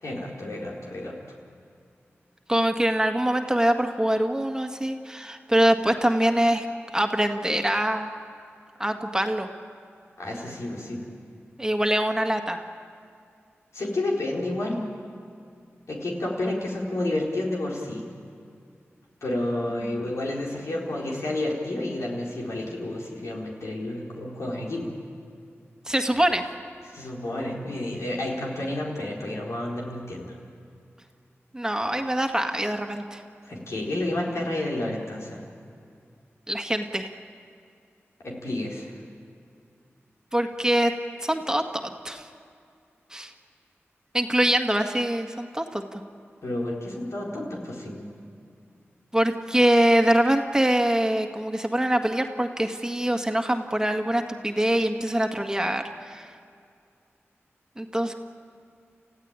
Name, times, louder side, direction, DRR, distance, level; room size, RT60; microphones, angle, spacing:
voice 1, 0.0-1.1 10.2-11.1 13.7-14.9 15.9-18.0 19.2-24.9 26.9-30.3 33.4-35.4 38.2-38.9 46.4-48.1, left 1 dB, 85° left, -3 dB, 4.4 m, -30 dB
voice 2, 2.5-6.7 6.9-8.1 8.8-9.5 11.6-12.6 19.8-20.1 25.9-26.5 31.5-33.2 36.5-37.1 40.3-40.9 41.2-42.3 43.1-43.3 44.1-46.0 49.1-56.3 57.8-58.1, right 1 dB, 15° right, 4 dB, 1.8 m, -24 dB
29.5 x 15.5 x 8.9 m, 2.3 s
wide cardioid pair, 55°, 5 cm